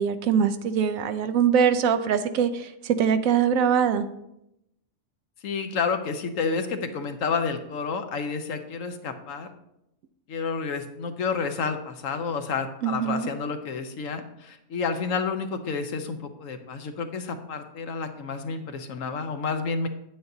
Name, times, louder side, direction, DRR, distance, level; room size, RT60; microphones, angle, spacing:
voice 1, 0.0-4.1 12.8-13.3, right 7 dB, 75° right, 10 dB, 1.0 m, -23 dB
voice 2, 5.4-9.5 10.3-19.9, left 5 dB, 70° left, 8 dB, 1.1 m, -30 dB
9.0 x 8.6 x 2.7 m, 0.83 s
omnidirectional pair, 1.4 m